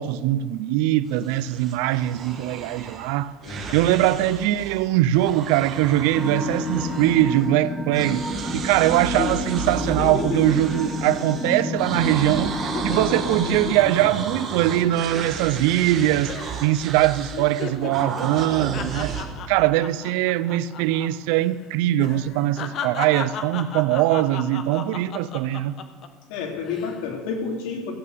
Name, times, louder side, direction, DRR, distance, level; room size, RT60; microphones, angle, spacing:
voice 1, 0.0-3.3 3.7-8.2 8.5-12.5 12.8-16.4 16.6-19.1 19.5-25.7, right 14 dB, 75° right, 0.5 m, -22 dB
sound 1, 1.1-4.9 5.1-7.7 7.9-19.3, right 6 dB, 30° right, 1.6 m, -34 dB
voice 2, 3.4-3.9 26.3-27.9, left 5 dB, 75° left, 3.2 m, -30 dB
sound 2, 6.1-13.6, left 1 dB, 5° left, 1.7 m, -30 dB
sound 3, 9.2-11.7 12.0-12.2 12.5-16.0 16.3-16.7 17.0-21.1 21.3-21.5 22.0-26.1 26.6-27.0, left 7 dB, 40° left, 1.0 m, -34 dB
15.5 x 8.7 x 6.8 m
cardioid pair, 160°, 0 cm